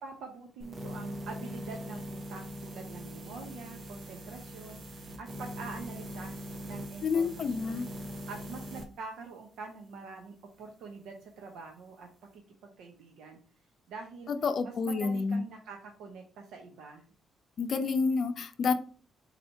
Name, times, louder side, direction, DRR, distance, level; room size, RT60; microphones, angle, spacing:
voice 1, 0.0-6.4 6.6-13.4 13.9-14.3 14.6-17.0, right 4 dB, 80° right, 2 dB, 0.7 m, -45 dB
sound 1, 0.6-8.9, equal, 45° right, 0.7 m, -41 dB
voice 2, 7.0-7.9 14.4-15.4 17.6-18.7, left 4 dB, 55° left, 9 dB, 0.5 m, -29 dB
4.1 x 2.7 x 4.4 m, 0.41 s
cardioid pair, 90°, 0 cm